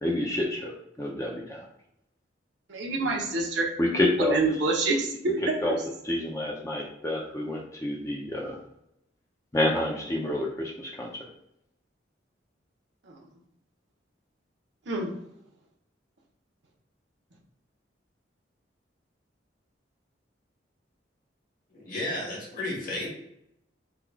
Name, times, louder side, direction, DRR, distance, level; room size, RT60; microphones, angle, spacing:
voice 1, 0.0-1.6 3.8-4.4 5.4-5.7 6.0-8.6 9.5-11.1, left 1 dB, 15° left, -1 dB, 0.5 m, -28 dB
voice 2, 2.7-3.6 4.2-5.5 13.1-13.2 14.9-15.1, right 3 dB, 75° right, -1 dB, 1.0 m, -27 dB
voice 3, 21.7-23.1, left 1 dB, 45° left, -2 dB, 1.3 m, -33 dB
3.8 x 2.4 x 4.5 m, 0.79 s
head